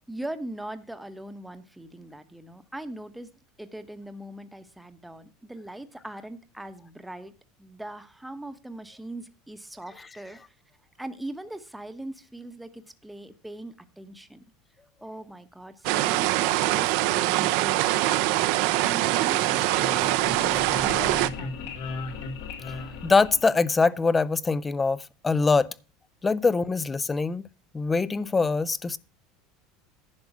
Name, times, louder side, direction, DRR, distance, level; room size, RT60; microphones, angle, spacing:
voice 1, 0.1-3.3 3.6-7.3 7.6-10.5 11.0-14.4 15.0-16.3 16.6-21.7, right 1 dB, 5° right, 1.0 m, -40 dB
sound 1, 15.8-21.3, right 17 dB, 70° right, 0.7 m, -23 dB
sound 2, 19.1-23.9, left 4 dB, 75° left, 2.9 m, -37 dB
voice 2, 23.0-25.7 26.2-27.4 27.7-29.0, left 4 dB, 15° left, 0.5 m, -23 dB
10.5 x 5.9 x 5.9 m
supercardioid pair, 130°, 0 cm